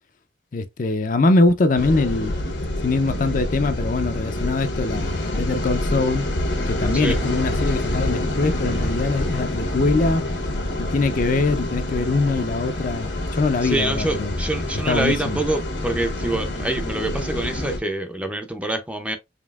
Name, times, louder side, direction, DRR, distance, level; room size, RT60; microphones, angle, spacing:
voice 1, 0.5-2.3 2.8-6.3 6.7-10.2 10.8-14.3 14.9-15.4, left 3 dB, 50° left, 0.5 m, -22 dB
sound 1, 1.8-17.8, left 1 dB, 85° left, 1.2 m, -27 dB
voice 2, 13.6-19.2, right 1 dB, 5° right, 0.5 m, -26 dB
5.2 x 2.9 x 2.4 m
head